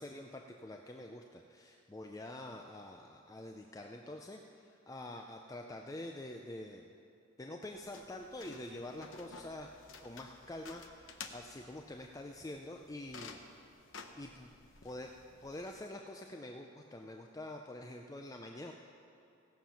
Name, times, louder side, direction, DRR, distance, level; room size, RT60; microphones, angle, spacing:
voice 1, 0.0-6.9 7.4-9.7 10.0-13.4 14.1-14.5 14.8-15.1 15.4-18.7, left 1 dB, 15° left, 3 dB, 0.4 m, -46 dB
sound 1, 7.7-15.8, left 4 dB, 70° left, 0.8 m, -53 dB
17.0 x 7.3 x 5.7 m, 2.6 s
head